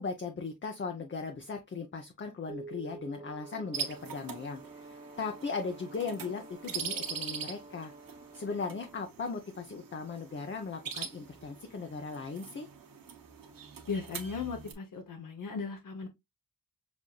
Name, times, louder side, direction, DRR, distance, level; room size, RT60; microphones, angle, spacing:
voice 1, 0.0-7.9 8.3-12.7, left 4 dB, 35° left, 0.6 m, -38 dB
sound 1, 2.5-5.0, right 4 dB, 45° right, 0.9 m, -49 dB
Brass instrument, 3.1-9.1, right 2 dB, 15° right, 0.5 m, -51 dB
sound 2, 3.7-14.7, right 6 dB, 85° right, 0.9 m, -43 dB
voice 2, 13.9-16.1, left 5 dB, 70° left, 0.8 m, -37 dB
6.0 x 2.6 x 2.2 m
wide cardioid pair, 110°, 33 cm